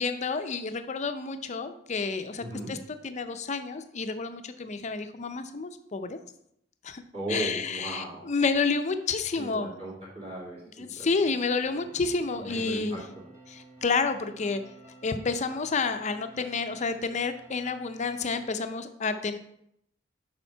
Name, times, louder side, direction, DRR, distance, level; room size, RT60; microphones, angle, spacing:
voice 1, 0.0-2.8 3.0-6.2 6.8-7.0 7.3-9.7 10.8-13.0 13.5-14.6 15.0-19.4, left 4 dB, 40° left, 9 dB, 0.5 m, -30 dB
voice 2, 2.4-2.7 7.1-8.3 9.3-11.3 12.4-13.0, right 1 dB, 30° right, -6 dB, 2.4 m, -37 dB
sound 1, 11.6-18.5, right 2 dB, 15° right, 1.4 m, -52 dB
7.2 x 5.0 x 4.5 m, 0.75 s
head